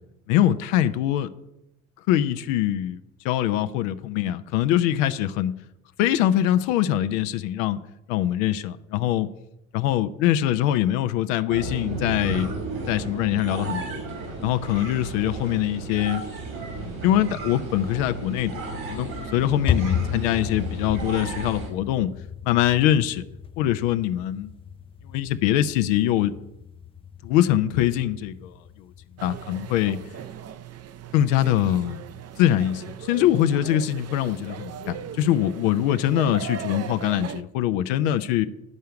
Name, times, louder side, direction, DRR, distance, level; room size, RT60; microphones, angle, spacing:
voice 1, 0.3-1.3 2.1-5.5 6.0-7.8 8.1-9.3 9.7-12.5 12.9-14.0 14.4-16.2 16.7-22.1 22.4-23.2 23.6-24.5 25.0-26.3 27.2-28.5 29.2-30.0 31.1-32.0 32.4-38.5, left 12 dB, 65° left, 10 dB, 0.7 m, -23 dB
sound 1, 11.5-21.7, right 3 dB, 75° right, 4.5 m, -33 dB
sound 2, 18.8-30.1, left 8 dB, 15° left, 0.4 m, -34 dB
sound 3, 29.2-37.4, right 9 dB, 35° right, 0.8 m, -38 dB
11.0 x 5.6 x 7.7 m, 0.87 s
figure-of-eight pair, 55°, 41 cm